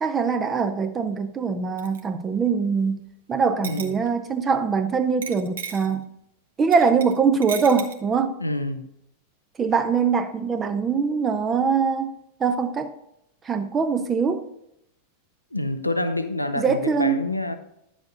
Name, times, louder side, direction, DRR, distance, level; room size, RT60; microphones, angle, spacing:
voice 1, 0.0-3.0 3.3-6.0 6.6-8.3 9.6-12.1 12.4-12.9 13.4-14.4 16.6-17.2, right 5 dB, 20° right, 0.7 m, -22 dB
sound 1, 1.8-2.0 3.6-4.2 5.2-5.9 6.7-7.2 7.4-7.9, right 7 dB, 65° right, 1.1 m, -34 dB
voice 2, 3.6-4.0 8.4-8.9 15.5-17.6, left 2 dB, 85° left, 0.7 m, -27 dB
10.5 x 7.1 x 2.7 m
figure-of-eight pair, 90°, 0 cm